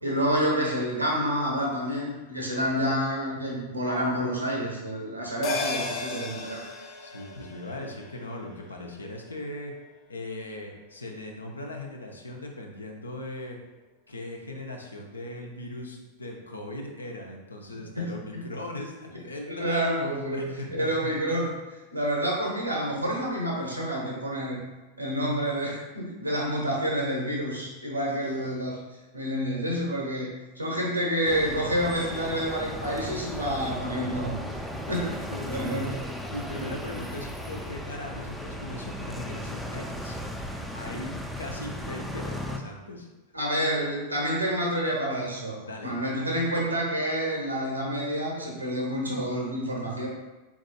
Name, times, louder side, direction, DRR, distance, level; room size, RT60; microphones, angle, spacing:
voice 1, 0.0-6.6 17.9-18.4 19.5-21.5 21.9-24.6 25.0-28.8 29.1-30.3 30.6-36.1 36.6-36.7 43.3-50.1, equal, 85° right, -2 dB, 1.0 m, -28 dB
sound 1, 5.4-10.1 10.5-10.6, left 3 dB, 40° left, 0.7 m, -36 dB
voice 2, 7.0-9.7 10.1-13.6 14.1-19.8 20.3-21.1 28.1-28.6 34.7-34.8 35.3-35.8 36.3-40.2 40.7-43.1 45.6-45.9, left 1 dB, 80° left, 1 dB, 0.6 m, -39 dB
sound 2, 31.3-42.6, left 1 dB, ahead, 0.4 m, -36 dB
4.8 x 4.1 x 2.2 m, 1.1 s
figure-of-eight pair, 90°, 0 cm